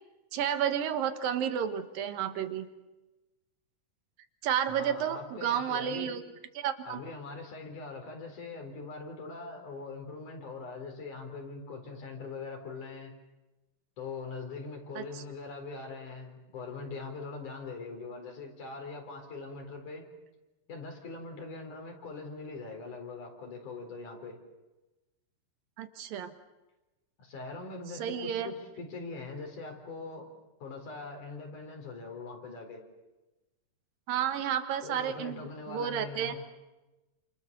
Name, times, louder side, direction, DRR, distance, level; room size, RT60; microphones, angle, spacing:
voice 1, 0.3-2.7 4.4-6.2 6.5-7.0 15.0-15.2 25.8-26.3 27.9-28.5 34.1-36.4, right 9 dB, 90° right, 9 dB, 3.2 m, -31 dB
voice 2, 4.7-6.1 6.8-13.1 14.0-20.1 20.7-24.4 27.2-30.3 30.6-32.8 34.8-36.4, left 3 dB, 65° left, 3 dB, 5.7 m, -42 dB
29.0 x 27.5 x 6.9 m, 1.1 s
omnidirectional pair, 3.9 m